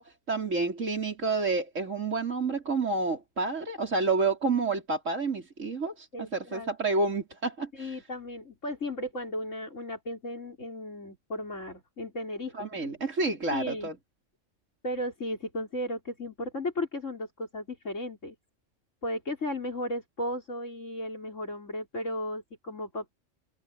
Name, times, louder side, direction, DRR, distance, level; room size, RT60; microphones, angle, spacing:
voice 1, 0.0-7.9 12.5-13.9, right 3 dB, 75° right, 4.7 m, -29 dB
voice 2, 6.1-6.7 7.7-12.9 13.5-13.9 14.8-18.4 19.0-23.1, left 1 dB, 70° left, 5.8 m, -35 dB
omnidirectional pair, 1.3 m